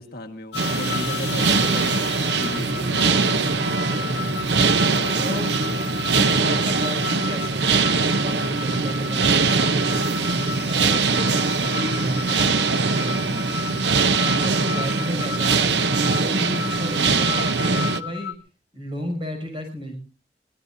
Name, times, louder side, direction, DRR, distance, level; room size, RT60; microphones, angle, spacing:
voice 1, 0.0-3.5 4.7-6.1 9.0-9.3 11.6-12.0 13.3-13.6 16.9-17.3, left 1 dB, 60° left, 5 dB, 1.6 m, -37 dB
sound 1, 0.5-18.3, left 8 dB, 85° left, 1.1 m, -33 dB
sound 2, 0.6-18.0, right 4 dB, 75° right, 0.8 m, -22 dB
voice 2, 3.9-4.7 5.2-5.5 6.1-13.9 14.4-18.4 18.7-20.0, equal, 30° right, 3 dB, 6.6 m, -33 dB
23.5 x 18.5 x 2.7 m, 0.33 s
head